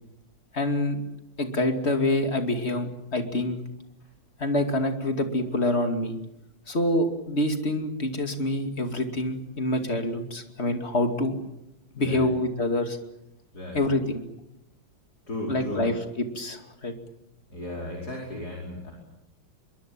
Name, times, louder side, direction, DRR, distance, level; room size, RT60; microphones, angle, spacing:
voice 1, 0.5-1.0 1.4-3.6 4.4-6.2 6.7-11.4 11.9-13.0 13.7-14.2 15.5-15.9 16.3-16.9, left 1 dB, 30° left, 6 dB, 2.8 m, -26 dB
voice 2, 12.0-12.3 13.5-13.8 15.3-15.9 17.5-18.9, left 1 dB, 50° left, -1 dB, 5.6 m, -35 dB
25.0 x 23.0 x 8.9 m, 0.89 s
omnidirectional pair, 2.1 m